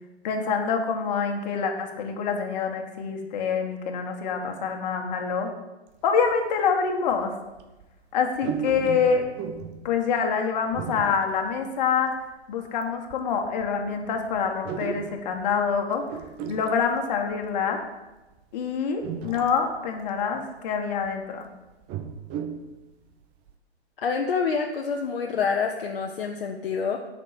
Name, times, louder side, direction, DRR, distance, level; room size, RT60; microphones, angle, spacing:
voice 1, 0.2-5.5 6.0-7.3 8.1-9.2 9.8-12.1 12.5-16.0 16.5-17.8 18.5-21.5, left 6 dB, 40° left, 4 dB, 1.7 m, -26 dB
sound 1, 6.2-6.3 7.1-7.3 7.6-7.8 8.3-10.0 10.7-11.5 12.0-12.1 12.8-12.9 13.1-15.8 16.1-17.6 18.4-18.5 19.0-19.8 20.1-20.2 20.8-21.1 21.7-22.7 23.1-23.2 23.5-23.6, right 7 dB, 20° right, 0.6 m, -35 dB
voice 2, 24.0-27.0, left 5 dB, 55° left, 2 dB, 1.1 m, -27 dB
9.3 x 6.0 x 8.4 m, 1.1 s
figure-of-eight pair, 120°, 33 cm